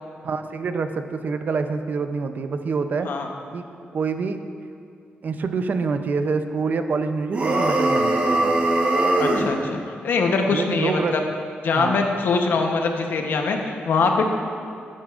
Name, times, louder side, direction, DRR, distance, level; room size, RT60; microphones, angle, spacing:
voice 1, 0.2-3.1 3.5-3.7 3.9-4.4 5.2-8.6 10.5-11.2 11.7-12.1, right 4 dB, 50° right, 8 dB, 0.5 m, -26 dB
sound 1, 7.3-9.5, right 2 dB, 35° right, 1.0 m, -20 dB
voice 2, 9.2-11.2 11.6-14.2, left 4 dB, 70° left, 3 dB, 0.9 m, -23 dB
11.5 x 9.3 x 2.5 m, 2.4 s
wide cardioid pair, 125°, 4 cm